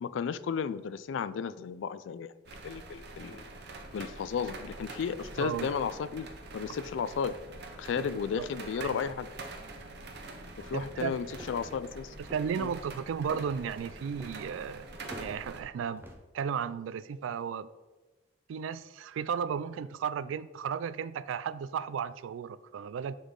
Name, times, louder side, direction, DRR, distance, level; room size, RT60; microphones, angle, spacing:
voice 1, 0.0-2.3 2.6-3.4 3.9-6.3 6.5-7.3 7.8-9.3 10.6-12.1 12.6-12.7, left 6 dB, 70° left, 15 dB, 0.3 m, -34 dB
sound 1, 2.5-15.6, right 2 dB, 55° right, 0.8 m, -45 dB
voice 2, 5.4-5.7 8.0-8.5 8.7-9.0 10.7-11.2 12.2-14.9 15.2-16.1 16.3-17.7 18.5-23.2, right 7 dB, 80° right, 17 dB, 0.3 m, -34 dB
sound 2, 10.5-16.2, equal, 10° right, 0.7 m, -50 dB
7.0 x 5.5 x 3.7 m, 1.2 s
head